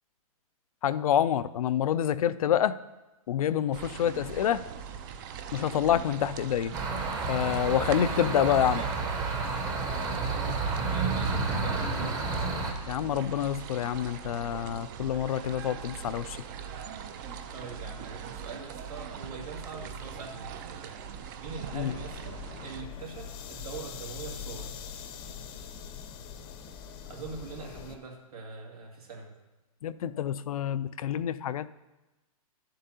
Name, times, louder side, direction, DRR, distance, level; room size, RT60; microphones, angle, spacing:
voice 1, 0.8-2.8 3.3-4.6 5.5-6.7 7.3-8.8 12.9-16.4 21.7-21.9 29.8-31.7, left 10 dB, 75° left, 15 dB, 0.4 m, -27 dB
sound 1, 3.7-22.8, right 7 dB, 35° right, 0.5 m, -41 dB
sound 2, 6.7-12.7, right 3 dB, 20° right, 0.9 m, -30 dB
voice 2, 7.7-9.1 9.9-12.0 14.8-14.9 17.5-21.0 21.4-24.7 27.1-29.3, right 4 dB, 90° right, 0 dB, 2.2 m, -42 dB
sound 3, 21.9-28.0, left 7 dB, 25° left, 0.6 m, -42 dB
11.5 x 7.5 x 2.8 m, 1.1 s
hypercardioid pair, 145°, 19 cm